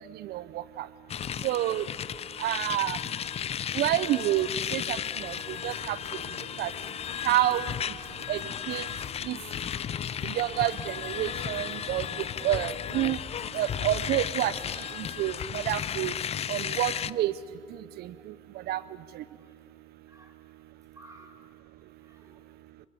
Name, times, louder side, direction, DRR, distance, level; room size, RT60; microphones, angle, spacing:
voice 1, 0.2-0.9 1.4-1.9 2.4-3.0 3.7-5.3 5.6-6.0 6.6-6.7 7.2-7.7 8.3-8.4 8.7-8.9 9.3-9.4 10.2-12.1 12.4-13.2 13.5-16.1 16.5-17.3 18.0-18.1 18.7-18.8, right 14 dB, 70° right, 16 dB, 0.5 m, -28 dB
sound 1, 1.1-17.1, left 9 dB, 35° left, 0.5 m, -34 dB
sound 2, 2.8-16.4, left 7 dB, 60° left, 2.1 m, -49 dB
voice 2, 8.0-8.3 8.9-9.0 9.6-10.1 15.8-15.9 20.1-20.3 21.0-21.3 22.0-22.3, right 1 dB, 20° right, 3 dB, 4.1 m, -51 dB
26.5 x 22.0 x 7.1 m, 2.3 s
cardioid pair, 110°, 17 cm